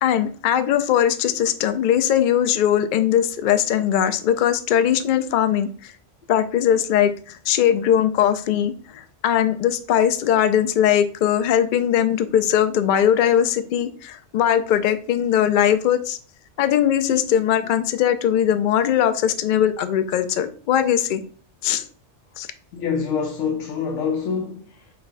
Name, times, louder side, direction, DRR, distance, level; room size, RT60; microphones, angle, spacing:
voice 1, 0.0-5.9 6.3-16.2 16.6-21.2 21.6-21.8 22.4-22.5, left 10 dB, 60° left, 0.6 m, -20 dB
voice 2, 22.7-24.9, left 6 dB, 85° left, 1.0 m, -26 dB
5.5 x 2.3 x 4.0 m
omnidirectional pair, 1.2 m